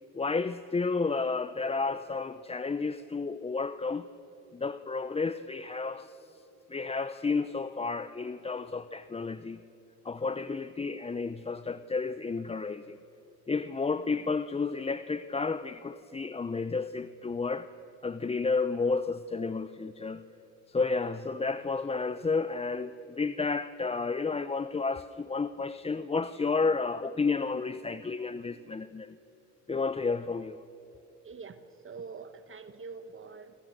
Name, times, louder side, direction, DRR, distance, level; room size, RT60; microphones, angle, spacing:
voice 1, 0.1-4.1 4.5-6.2 6.7-9.6 10.0-13.0 13.5-17.7 18.0-20.2 20.7-29.2 29.7-30.6, left 4 dB, 20° left, 0.6 m, -31 dB
voice 2, 31.2-31.6 31.8-33.5, right 5 dB, 45° right, 1.3 m, -44 dB
27.0 x 26.5 x 6.6 m
cardioid pair, 90°, 30 cm